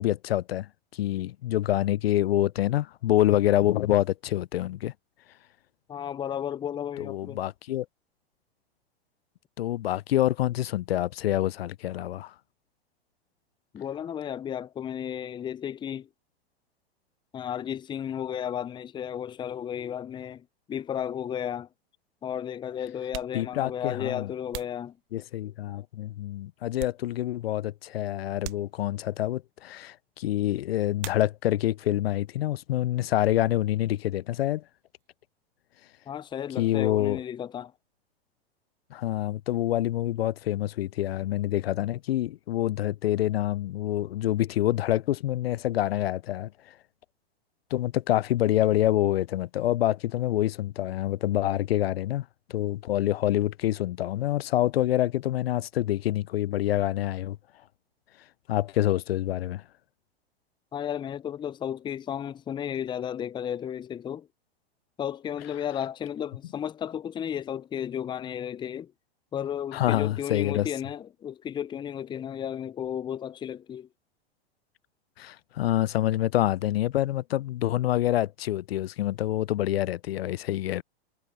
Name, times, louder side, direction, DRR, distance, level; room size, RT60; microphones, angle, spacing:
voice 1, 0.0-4.9 7.0-7.9 9.6-12.3 23.3-24.3 25.1-34.6 36.6-37.2 38.9-46.7 47.7-57.4 58.5-59.6 69.7-70.7 75.2-80.8, left 13 dB, 70° left, 0.6 m, -26 dB
voice 2, 5.9-7.4 13.7-16.1 17.3-21.7 22.2-25.0 36.1-37.7 60.7-64.3 65.0-68.9 69.3-73.9, left 9 dB, 15° left, 0.6 m, -33 dB
sound 1, 21.2-21.3 22.2-22.4 22.9-25.6 26.1-27.5 27.8-27.9 28.4-29.2 31.0-31.8 32.0-32.7 33.0-35.1, right 27 dB, 50° right, 1.3 m, -46 dB
hypercardioid pair, 105°, 31 cm